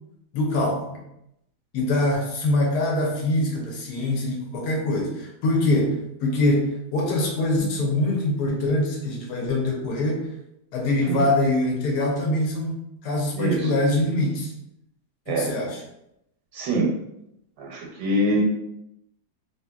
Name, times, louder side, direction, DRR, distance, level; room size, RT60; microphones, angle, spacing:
voice 1, 0.3-1.0 1.7-6.0 6.2-10.3 10.7-14.5 15.3-15.8, left 1 dB, 80° left, -1 dB, 1.3 m, -24 dB
voice 2, 13.3-13.7 15.3-15.5 16.5-16.9 17.6-18.4, right 1 dB, 85° right, -1 dB, 1.2 m, -24 dB
2.7 x 2.7 x 2.3 m, 0.83 s
omnidirectional pair, 1.7 m